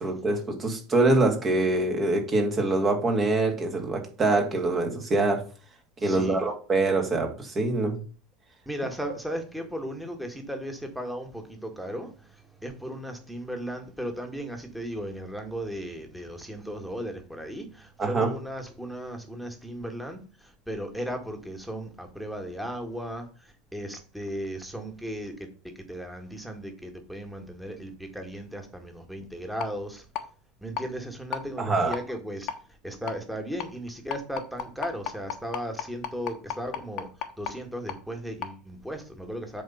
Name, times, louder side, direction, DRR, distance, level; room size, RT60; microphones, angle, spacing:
voice 1, 0.0-5.4 6.0-8.0 18.0-18.3 31.6-31.9, right 2 dB, 30° right, 3 dB, 2.3 m, -24 dB
voice 2, 6.0-6.4 8.7-25.3 25.6-30.0 30.6-32.5 32.8-37.1 37.4-39.6, equal, ahead, 4 dB, 2.0 m, -36 dB
sound 1, 29.6-29.7 30.1-30.2 30.8-30.9 31.3-31.4 31.9-32.0 32.5-32.6 33.1-33.2 33.6-33.7 34.1-37.5 37.9-38.0 38.4-38.5, left 10 dB, 50° left, 1.2 m, -32 dB
7.8 x 4.4 x 5.8 m, 0.38 s
figure-of-eight pair, 75°, 0 cm